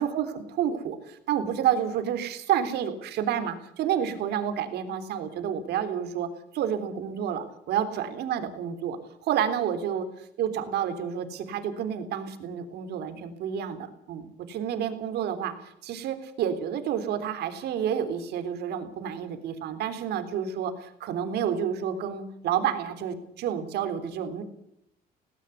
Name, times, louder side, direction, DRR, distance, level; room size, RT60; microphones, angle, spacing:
voice 1, 0.0-6.3 6.5-10.1 10.4-24.4, right 9 dB, 75° right, 9 dB, 3.5 m, -29 dB
18.0 x 17.5 x 8.2 m, 0.76 s
cardioid pair, 110°, 17 cm